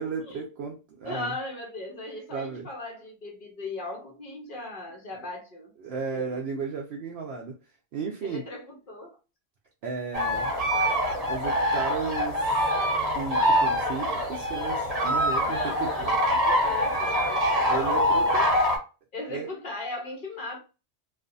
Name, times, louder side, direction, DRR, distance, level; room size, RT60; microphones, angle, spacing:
voice 1, 0.0-1.4 2.3-2.7 5.8-7.5 7.9-8.5 9.8-10.5 11.3-12.5 12.9-16.1 17.7-18.5 19.3-19.5, right 5 dB, 70° right, 0.8 m, -34 dB
voice 2, 1.0-5.7 6.1-6.3 8.2-9.2 10.5-10.7 15.4-17.8 19.1-20.6, left 2 dB, 50° left, 0.9 m, -38 dB
sound 1, 10.1-18.8, equal, 35° right, 0.9 m, -24 dB
2.5 x 2.4 x 2.5 m
omnidirectional pair, 1.2 m